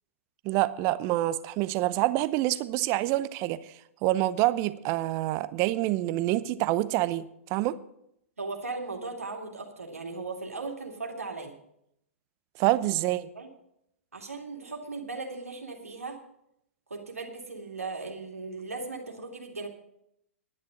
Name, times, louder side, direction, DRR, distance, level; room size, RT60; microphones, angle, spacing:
voice 1, 0.4-7.2 7.5-7.8 12.6-13.3, right 16 dB, 40° right, 15 dB, 0.7 m, -27 dB
voice 2, 8.4-11.5 13.3-13.5 14.1-16.2 16.9-19.7, right 3 dB, 90° right, 2 dB, 2.4 m, -37 dB
11.0 x 9.5 x 6.5 m, 0.78 s
hypercardioid pair, 110°, 8 cm